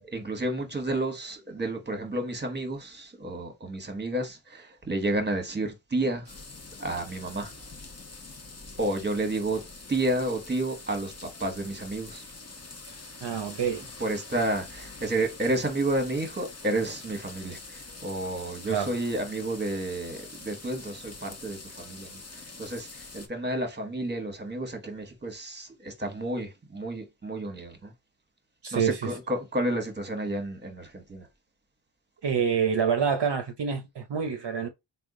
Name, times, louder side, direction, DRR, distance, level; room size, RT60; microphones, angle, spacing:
voice 1, 0.0-6.3 6.8-7.5 8.8-9.6 9.9-12.2 14.0-27.9 28.7-31.3, right 1 dB, 20° right, 1.1 m, -31 dB
sound 1, 6.3-23.3, left 3 dB, 30° left, 0.8 m, -45 dB
voice 2, 13.2-13.8 18.7-18.9 28.6-29.1 32.2-34.7, right 7 dB, 55° right, 0.7 m, -27 dB
3.5 x 2.3 x 3.6 m
cardioid pair, 50°, 48 cm